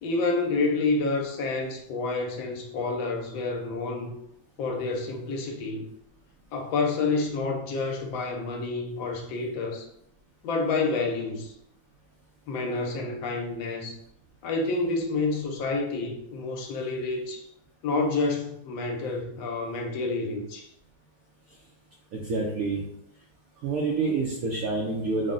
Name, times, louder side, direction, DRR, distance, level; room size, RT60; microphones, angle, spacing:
voice 1, 0.0-4.1 4.6-5.9 6.5-9.9 10.4-11.5 12.5-14.0 14.4-17.5 17.8-20.7, left 3 dB, 90° left, 2 dB, 1.4 m, -29 dB
voice 2, 22.1-22.8 23.6-25.3, right 3 dB, 80° right, -2 dB, 0.8 m, -27 dB
3.7 x 2.1 x 3.7 m, 0.75 s
omnidirectional pair, 2.1 m